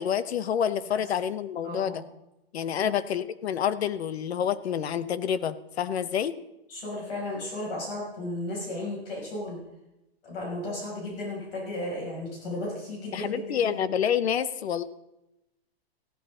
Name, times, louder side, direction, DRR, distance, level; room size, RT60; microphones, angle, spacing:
voice 1, 0.0-2.0 2.5-6.4 13.1-14.8, left 8 dB, 80° left, 15 dB, 1.0 m, -28 dB
voice 2, 1.6-2.0 2.8-3.0 6.7-9.6 10.2-13.7, left 1 dB, 60° left, -4 dB, 6.7 m, -34 dB
15.5 x 13.5 x 3.9 m, 0.90 s
hypercardioid pair, 160°, 31 cm